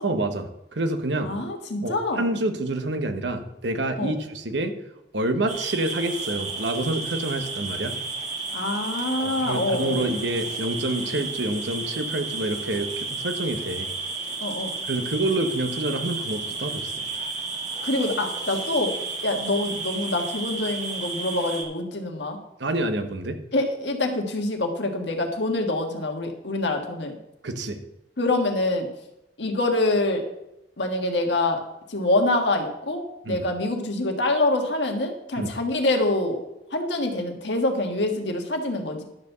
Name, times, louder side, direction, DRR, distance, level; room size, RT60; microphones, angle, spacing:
voice 1, 0.0-1.3 1.8-4.7 5.1-7.9 9.2-13.9 14.9-17.0 22.6-23.4 27.4-27.8 33.2-33.4 35.4-35.5, right 2 dB, 90° right, 7 dB, 1.1 m, -27 dB
voice 2, 1.2-2.2 4.0-4.1 8.5-10.1 14.4-14.7 17.8-18.9 19.2-22.4 23.5-27.2 28.2-28.9 29.4-30.2 30.8-31.6 31.9-36.4 36.7-39.0, left 2 dB, 80° left, 3 dB, 1.6 m, -25 dB
sound 1, 5.5-21.6, right 3 dB, 45° right, 1.8 m, -32 dB
11.5 x 4.6 x 6.8 m, 0.88 s
head